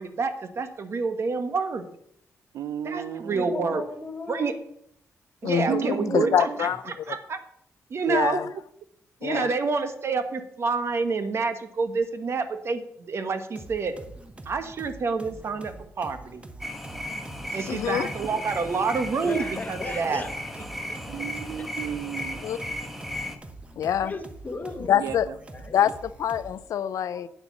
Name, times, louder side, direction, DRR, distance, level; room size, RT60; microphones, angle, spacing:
voice 1, 0.0-1.9 2.8-3.8 4.3-4.5 5.4-7.4 7.9-8.4 9.2-13.9 14.4-16.4 17.5-20.2, right 4 dB, 50° right, 1.2 m, -28 dB
voice 2, 2.5-3.8 5.7-6.6 17.5-17.6 18.2-18.4 19.2-19.3 21.1-22.4 24.9-25.3, right 9 dB, 90° right, 0.6 m, -34 dB
voice 3, 3.2-4.5 5.7-6.5 19.2-20.3 20.9-21.0 24.0-25.1 25.5-25.9 27.0-27.3, left 3 dB, 30° left, 1.3 m, -36 dB
voice 4, 5.4-6.8 8.1-8.5 9.2-9.5 17.7-18.1 22.4-22.6 23.8-24.1 24.9-25.3 25.7-27.3, left 9 dB, 80° left, 0.5 m, -25 dB
sound 1, 13.6-26.7, right 2 dB, 20° right, 1.0 m, -45 dB
sound 2, 16.6-23.4, left 1 dB, ahead, 1.2 m, -36 dB
9.0 x 8.1 x 6.1 m
cardioid pair, 115°, 6 cm